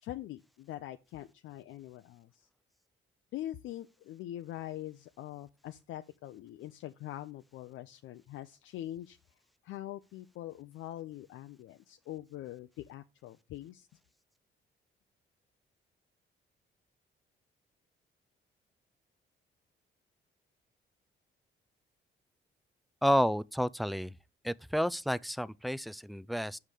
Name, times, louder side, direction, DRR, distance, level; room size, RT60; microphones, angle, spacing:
voice 1, 0.0-2.5 3.3-9.2 9.6-13.9, left 13 dB, 80° left, 0.5 m, -43 dB
voice 2, 23.0-24.1 24.4-26.6, equal, ahead, 0.3 m, -30 dB
6.4 x 5.9 x 5.0 m
cardioid pair, 90°, 20 cm